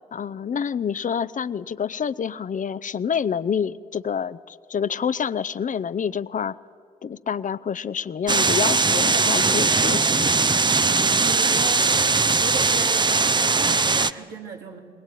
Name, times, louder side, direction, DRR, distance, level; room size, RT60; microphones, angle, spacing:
voice 1, 0.1-6.6 7.0-10.3, left 7 dB, 50° left, 15 dB, 0.7 m, -27 dB
sound 1, 8.3-14.1, right 4 dB, 25° right, 0.6 m, -20 dB
voice 2, 11.2-11.9 12.4-13.1 13.3-14.8, right 4 dB, 90° right, 0 dB, 2.6 m, -35 dB
20.5 x 20.5 x 9.2 m, 2.2 s
supercardioid pair, 45°, 17 cm